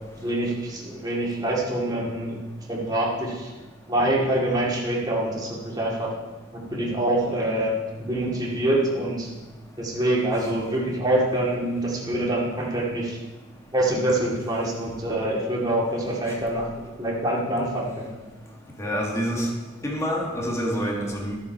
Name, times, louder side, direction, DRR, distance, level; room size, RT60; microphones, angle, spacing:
voice 1, 0.2-2.4 2.7-3.5 3.9-6.1 6.5-7.7 8.0-9.3 9.8-13.2 13.7-16.7 17.0-18.1, right 1 dB, 20° right, -4 dB, 2.2 m, -25 dB
voice 2, 18.8-19.5 19.8-21.4, equal, 15° left, -1 dB, 1.6 m, -27 dB
13.0 x 6.9 x 4.6 m, 1.2 s
head